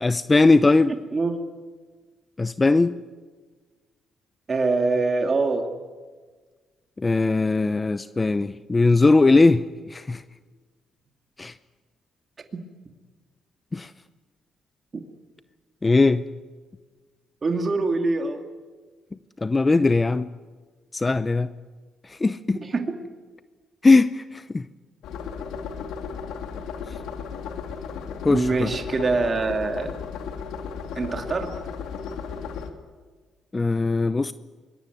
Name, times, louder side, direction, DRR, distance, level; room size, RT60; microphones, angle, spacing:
voice 1, 0.0-0.9 2.4-3.0 7.0-9.6 9.9-10.2 11.4-11.5 13.7-13.9 15.8-16.2 19.4-20.3 20.9-21.5 22.2-22.6 23.8-24.6 28.2-28.7 33.5-34.3, left 3 dB, 25° left, 13 dB, 0.7 m, -19 dB
voice 2, 0.9-1.4 4.5-5.7 12.5-12.6 17.4-18.4 22.6-22.9 28.3-30.0 31.0-31.5, right 3 dB, 35° right, 4 dB, 2.5 m, -24 dB
sound 1, 25.0-32.7, left 6 dB, 85° left, 2.5 m, -35 dB
25.0 x 21.5 x 9.4 m, 1.4 s
cardioid pair, 90°, 0 cm